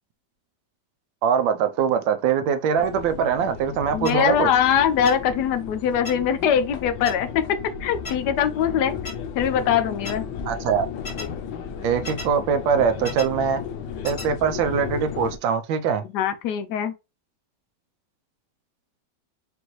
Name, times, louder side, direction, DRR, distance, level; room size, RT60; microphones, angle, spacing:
voice 1, 1.2-4.5 10.5-10.9 11.8-13.6 14.0-16.0, right 7 dB, 85° right, 1.4 m, -22 dB
sound 1, 2.8-15.4, left 7 dB, 90° left, 1.4 m, -34 dB
voice 2, 3.9-7.5 7.8-8.9 9.3-10.2 16.1-16.9, left 8 dB, 70° left, 1.1 m, -22 dB
sound 2, 4.1-4.2 5.1-5.2 6.1-6.2 7.1-7.2 8.1-8.2 9.1-9.2 10.1-10.2 11.1-11.3 12.1-12.3 13.1-13.3 14.1-14.3, left 2 dB, 45° left, 1.9 m, -33 dB
5.2 x 2.6 x 3.0 m
omnidirectional pair, 2.0 m